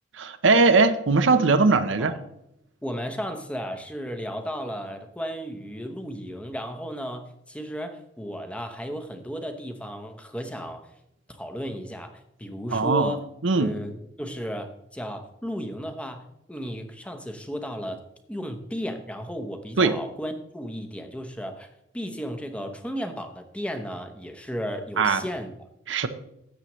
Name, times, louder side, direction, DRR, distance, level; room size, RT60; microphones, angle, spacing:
voice 1, 0.1-2.1 12.7-13.1 13.4-13.8 19.8-20.0 25.0-25.2 25.9-26.1, right 3 dB, 75° right, 10 dB, 0.7 m, -20 dB
voice 2, 1.9-2.3 2.8-10.9 11.3-13.2 13.6-21.7 21.9-25.5, equal, 5° left, 6 dB, 0.9 m, -34 dB
13.0 x 8.3 x 3.1 m, 0.82 s
head